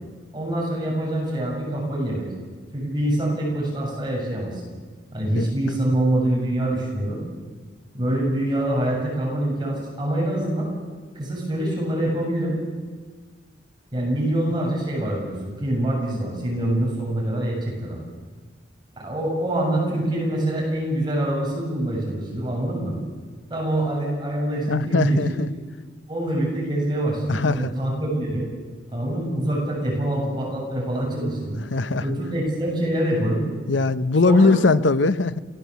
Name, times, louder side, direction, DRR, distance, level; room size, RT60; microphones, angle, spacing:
voice 1, 0.3-2.3 2.7-4.6 5.1-7.2 7.9-10.7 11.1-12.5 13.9-18.0 19.0-22.9 23.5-25.3 26.1-28.5 28.9-31.6 32.0-33.4 34.2-34.5, right 1 dB, 25° right, -2 dB, 7.6 m, -25 dB
voice 2, 24.7-25.5 27.3-27.7 31.6-32.1 33.7-35.4, left 3 dB, 70° left, 14 dB, 0.8 m, -20 dB
28.5 x 18.5 x 8.2 m, 1.5 s
head